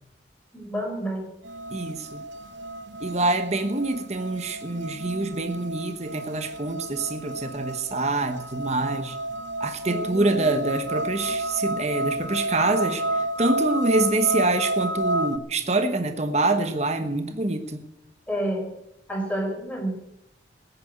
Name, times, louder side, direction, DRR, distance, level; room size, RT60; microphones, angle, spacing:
voice 1, 0.5-1.3 9.9-10.7 11.2-11.4 18.3-18.7 19.1-19.9, right 1 dB, 10° left, 0 dB, 4.5 m, -30 dB
sound 1, 1.4-15.4, right 1 dB, 85° right, 1.0 m, -31 dB
voice 2, 1.7-2.2 3.0-9.2 9.6-17.8, right 2 dB, 35° right, 8 dB, 1.1 m, -26 dB
14.0 x 10.5 x 7.9 m, 0.81 s
head